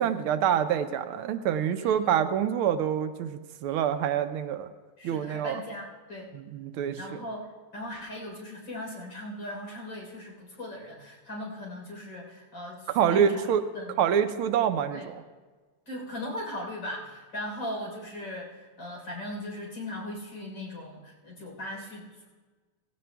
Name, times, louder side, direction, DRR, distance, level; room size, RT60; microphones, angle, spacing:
voice 1, 0.0-4.7 5.0-5.6 6.3-7.2 12.9-13.6 14.0-15.2, right 9 dB, 80° right, 9 dB, 1.4 m, -26 dB
voice 2, 5.0-6.3 7.0-7.4 7.7-14.0 14.9-15.1 15.9-22.3, left 1 dB, 60° left, -2 dB, 4.5 m, -38 dB
18.5 x 16.0 x 2.3 m, 1.4 s
omnidirectional pair, 2.4 m